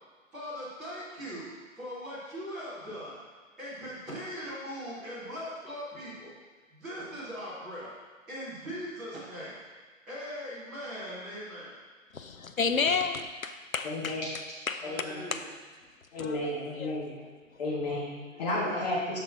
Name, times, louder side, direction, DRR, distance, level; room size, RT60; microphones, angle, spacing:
voice 1, 0.3-1.5 1.8-3.2 3.6-6.3 6.7-7.9 8.3-9.6 10.1-11.8 12.3-12.4 14.8-15.5, equal, ahead, -14 dB, 0.6 m, -40 dB
voice 2, 12.1-14.2 14.7-14.9 15.3-15.4 16.2-17.0, left 5 dB, 80° left, 8 dB, 0.7 m, -31 dB
voice 3, 13.8-14.2 14.8-15.2 16.1-17.1 17.6-19.2, left 2 dB, 30° left, -5 dB, 1.6 m, -32 dB
7.7 x 5.9 x 3.6 m, 1.4 s
figure-of-eight pair, 135°, 41 cm